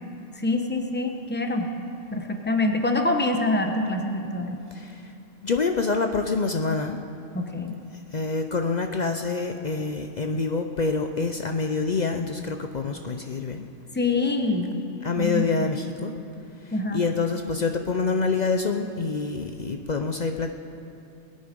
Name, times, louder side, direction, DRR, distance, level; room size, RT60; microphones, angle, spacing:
voice 1, 0.3-1.7 2.1-4.6 7.3-7.7 13.9-14.8 15.2-15.4 16.7-17.1, left 2 dB, 10° left, 4 dB, 0.8 m, -25 dB
voice 2, 5.4-7.0 8.1-13.7 15.0-16.1 16.9-20.5, left 4 dB, 50° left, 6 dB, 0.5 m, -26 dB
21.0 x 9.0 x 5.2 m, 2.6 s
omnidirectional pair, 1.3 m